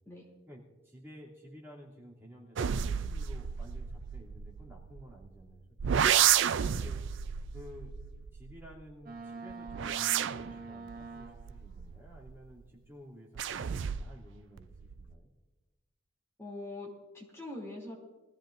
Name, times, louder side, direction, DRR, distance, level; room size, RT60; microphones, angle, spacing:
voice 1, 0.5-5.6 6.7-7.0 7.5-8.0 8.3-15.3, equal, 10° right, -6 dB, 2.7 m, -52 dB
sound 1, 2.6-5.3 5.8-8.9 9.5-12.5 13.3-14.3 14.6-15.1, right 9 dB, 55° right, 0.4 m, -31 dB
voice 2, 6.6-6.9 16.4-18.0, left 2 dB, 15° left, -3 dB, 2.7 m, -43 dB
Boat Water vehicle, 9.1-11.8, right 4 dB, 40° right, 0.9 m, -45 dB
22.0 x 14.5 x 2.5 m, 1.2 s
head